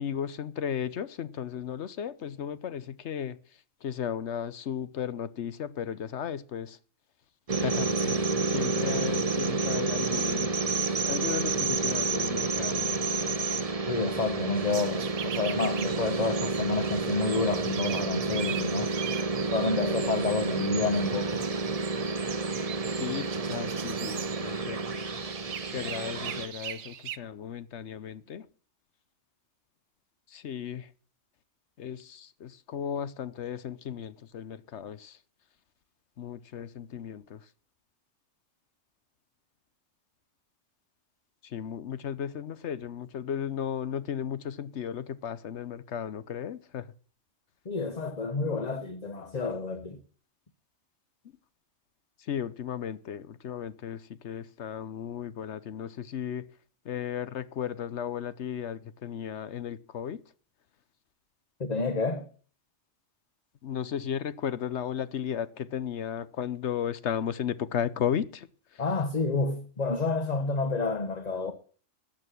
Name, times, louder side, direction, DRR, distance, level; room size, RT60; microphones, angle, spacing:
voice 1, 0.0-3.4 3.8-6.8 7.6-10.5 11.1-13.0 22.8-25.0 25.7-28.5 30.3-30.9 31.8-35.2 36.2-37.5 41.4-46.9 52.2-56.5 56.8-60.2 63.6-68.8, left 8 dB, 70° left, 1.1 m, -35 dB
sound 1, 7.5-26.5, right 3 dB, 35° right, 0.9 m, -30 dB
voice 2, 13.9-19.0 19.5-21.5 47.6-50.0 61.6-62.3 68.8-71.5, left 3 dB, 35° left, 1.1 m, -29 dB
sound 2, 14.6-27.2, right 10 dB, 70° right, 1.0 m, -41 dB
13.5 x 9.1 x 6.0 m
omnidirectional pair, 1.3 m